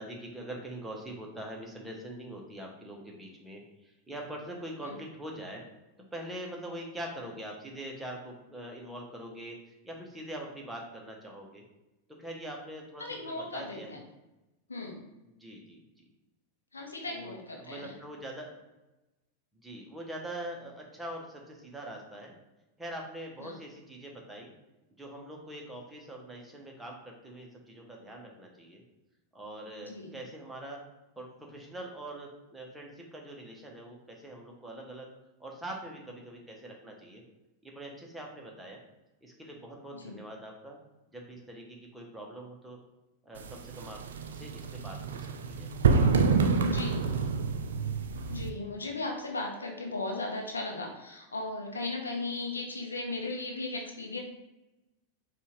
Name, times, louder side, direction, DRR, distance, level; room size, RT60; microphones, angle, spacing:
voice 1, 0.0-3.6 4.1-5.6 6.1-9.6 9.8-11.6 12.2-13.9 15.4-15.8 17.1-18.6 19.6-22.3 22.8-24.5 25.0-28.8 29.3-30.8 31.2-35.1 35.4-37.2 37.6-38.8 39.2-40.8 41.1-41.6 41.9-42.8 43.2-44.0 44.3-45.2 45.5-45.7 46.2-47.0, right 1 dB, 5° right, -1 dB, 1.0 m, -43 dB
voice 2, 13.0-14.0 14.7-15.0 16.7-17.9 23.4-23.5 29.9-30.2 39.9-40.2 46.6-47.1 48.3-54.2, left 2 dB, 75° left, 2 dB, 0.7 m, -37 dB
sound 1, 43.4-48.5, right 4 dB, 65° right, 0.4 m, -27 dB
5.3 x 2.5 x 3.2 m, 1.0 s
figure-of-eight pair, 90°, 0 cm